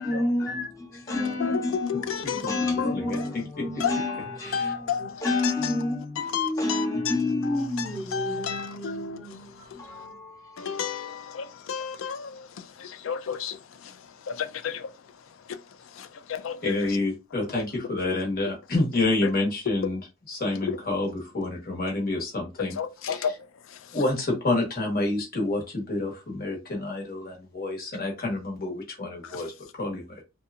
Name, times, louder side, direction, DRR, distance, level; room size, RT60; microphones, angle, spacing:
voice 1, 0.0-10.9, left 2 dB, 15° left, 0.6 m, -30 dB
voice 2, 1.1-2.9 3.8-5.7 6.2-7.1 7.4-9.2 10.6-12.5 12.8-13.6 14.3-14.9 16.0-16.7 22.8-23.3, left 7 dB, 75° left, 0.4 m, -31 dB
voice 3, 2.6-3.8 4.4-4.7 8.5-8.9 16.6-20.0 20.3-22.8 23.1-23.4 23.9-30.2, left 2 dB, 50° left, 1.1 m, -29 dB
2.7 x 2.2 x 2.4 m
head